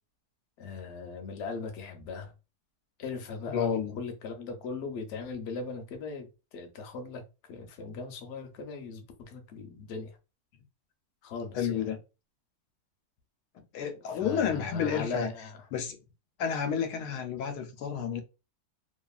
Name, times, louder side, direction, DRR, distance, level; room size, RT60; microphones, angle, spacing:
voice 1, 0.6-2.3 3.0-7.2 7.5-10.2 11.2-11.9 14.1-15.7, left 4 dB, 60° left, 0.8 m, -39 dB
voice 2, 3.5-4.0 11.5-12.0 13.7-15.3 15.7-16.0 16.4-18.2, left 7 dB, 90° left, 1.1 m, -30 dB
2.8 x 2.4 x 2.3 m
omnidirectional pair, 1.7 m